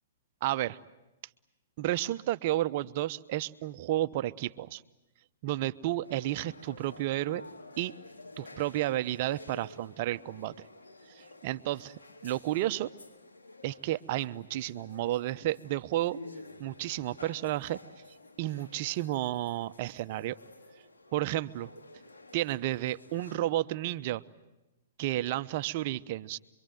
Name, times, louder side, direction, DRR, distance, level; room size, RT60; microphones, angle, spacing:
voice 1, 0.4-0.8 1.8-4.8 5.4-7.4 7.8-7.9 8.4-10.5 11.1-12.9 13.6-16.2 16.6-17.8 18.4-20.3 21.1-21.7 22.3-24.2 25.0-26.4, right 14 dB, 50° right, 14 dB, 0.9 m, -32 dB
sound 1, 6.0-23.4, left 2 dB, 85° left, 3.9 m, -51 dB
26.0 x 24.0 x 9.3 m, 0.97 s
hypercardioid pair, 125°, 0 cm